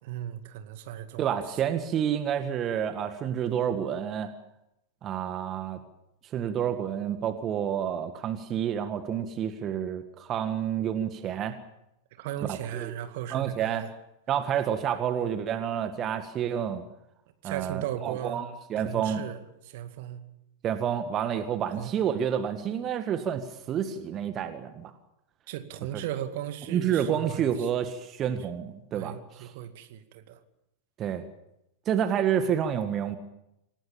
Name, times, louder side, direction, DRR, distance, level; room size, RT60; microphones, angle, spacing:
voice 1, 0.0-1.3 12.2-13.9 17.4-18.4 18.8-19.4 19.6-20.2 21.8-21.9 25.5-27.7 28.9-30.4, right 11 dB, 50° right, 9 dB, 2.1 m, -36 dB
voice 2, 1.2-4.3 5.0-5.8 6.3-11.6 12.5-12.9 13.3-13.8 14.3-16.8 17.4-19.2 20.6-24.9 26.7-29.5 31.0-31.2 31.8-33.2, right 9 dB, 30° right, 9 dB, 1.8 m, -29 dB
27.5 x 18.0 x 7.3 m, 0.85 s
figure-of-eight pair, 90°, 0 cm